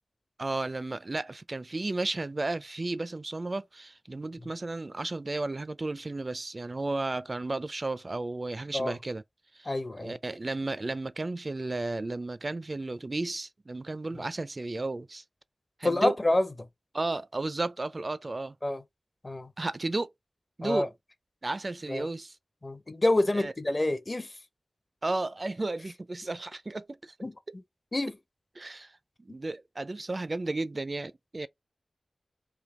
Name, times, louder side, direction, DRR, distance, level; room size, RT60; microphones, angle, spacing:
voice 1, 0.4-9.2 9.5-9.7 10.0-15.2 15.8-16.1 16.9-18.6 19.6-20.1 20.6-20.9 21.4-22.4 23.3-23.5 25.0-27.1 28.6-28.9 29.2-31.5, right 2 dB, 45° right, 0.4 m, -33 dB
voice 2, 9.7-10.1 15.8-16.5 18.6-18.8 19.2-19.5 20.6-20.9 21.9-22.1 22.6-24.3 27.2-27.3 27.9-28.1, left 1 dB, 35° left, 0.7 m, -27 dB
3.4 x 2.6 x 3.6 m
wide cardioid pair, 60°, 0 cm